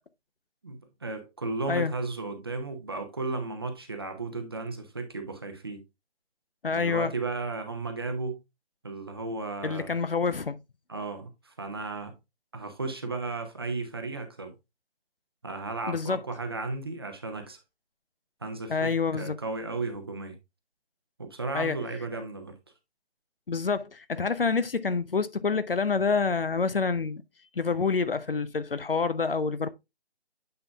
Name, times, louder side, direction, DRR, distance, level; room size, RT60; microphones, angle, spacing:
voice 1, 0.6-5.8 6.7-8.4 8.8-9.9 10.9-12.1 12.5-14.5 15.4-17.6 18.4-20.4 21.2-22.5, right 3 dB, 20° right, 0.8 m, -34 dB
voice 2, 6.6-7.1 9.6-10.6 15.9-16.2 18.7-19.4 21.5-21.8 23.5-27.2 27.6-29.7, left 5 dB, 55° left, 0.6 m, -27 dB
8.8 x 5.6 x 2.3 m
figure-of-eight pair, 155°, 33 cm